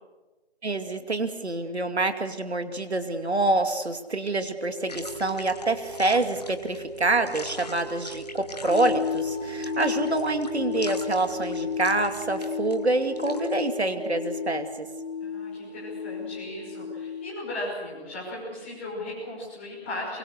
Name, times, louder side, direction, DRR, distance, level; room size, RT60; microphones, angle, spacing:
voice 1, 0.6-14.9, right 2 dB, 85° right, 8 dB, 2.5 m, -26 dB
sound 1, 4.6-14.6, right 4 dB, 50° right, 2.7 m, -41 dB
sound 2, 4.9-13.6, left 3 dB, 40° left, 1.3 m, -43 dB
sound 3, 8.7-17.3, left 6 dB, 90° left, 1.3 m, -33 dB
voice 2, 15.2-20.2, left 1 dB, 10° left, -6 dB, 5.6 m, -36 dB
24.0 x 23.5 x 6.7 m, 1.2 s
figure-of-eight pair, 175°, 32 cm